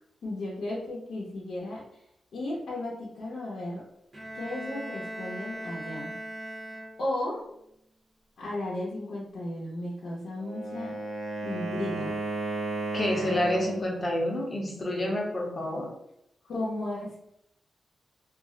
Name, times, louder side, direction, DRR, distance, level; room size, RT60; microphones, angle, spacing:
voice 1, 0.2-1.8 2.3-3.8 4.3-6.2 7.0-7.4 8.4-11.0 11.4-12.2 16.4-17.1, left 1 dB, 75° left, -6 dB, 0.6 m, -34 dB
Bowed string instrument, 4.1-7.3, right 1 dB, 25° right, 0.6 m, -39 dB
Wind instrument woodwind instrument, 10.3-13.9, right 2 dB, 55° right, 0.8 m, -34 dB
voice 2, 12.9-15.9, left 1 dB, 25° left, -1 dB, 0.6 m, -28 dB
2.4 x 2.0 x 3.6 m, 0.78 s
wide cardioid pair, 175°, 0 cm